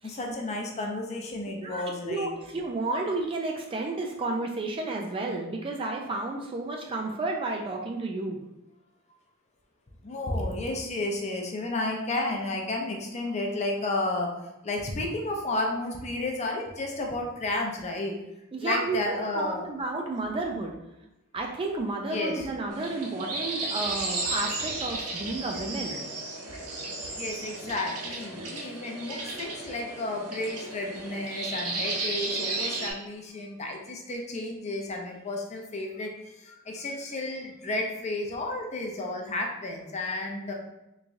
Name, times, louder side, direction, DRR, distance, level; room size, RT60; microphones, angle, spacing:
voice 1, 0.0-2.3 10.0-14.3 14.6-18.1 18.6-19.7 22.0-22.5 27.1-40.5, left 2 dB, 30° left, 1 dB, 0.5 m, -32 dB
voice 2, 1.6-8.4 18.5-20.7 21.3-26.0, right 2 dB, 25° right, 1 dB, 0.3 m, -32 dB
sound 1, 22.7-32.9, right 2 dB, 90° right, 0.8 m, -34 dB
3.6 x 3.1 x 2.5 m, 0.93 s
head